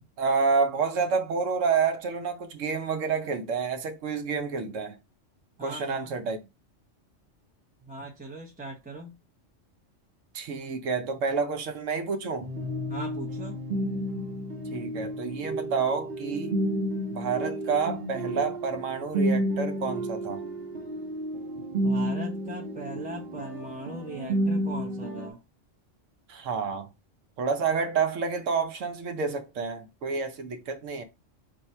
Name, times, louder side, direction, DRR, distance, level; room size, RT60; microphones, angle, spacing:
voice 1, 0.2-5.0 5.6-6.4 10.3-12.5 14.7-16.6 17.1-20.4 26.3-26.9 27.4-31.0, right 5 dB, 80° right, 1.0 m, -29 dB
voice 2, 5.6-6.2 7.8-9.1 12.9-13.6 21.7-25.4, right 1 dB, 10° right, 0.4 m, -39 dB
sound 1, 12.4-25.3, right 1 dB, 55° right, 0.9 m, -31 dB
3.4 x 2.6 x 4.2 m
omnidirectional pair, 1.3 m